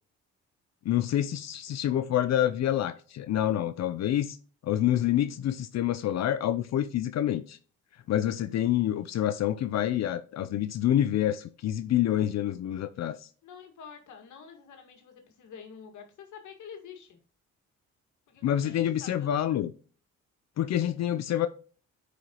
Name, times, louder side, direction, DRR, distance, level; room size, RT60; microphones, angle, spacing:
voice 1, 0.8-4.4 4.6-7.6 8.1-13.3 18.4-19.7 20.6-21.5, left 11 dB, 60° left, 0.6 m, -27 dB
voice 2, 13.4-17.2 18.3-19.6, left 6 dB, 75° left, 1.9 m, -47 dB
9.0 x 5.1 x 2.9 m
cardioid pair, 90°, 30 cm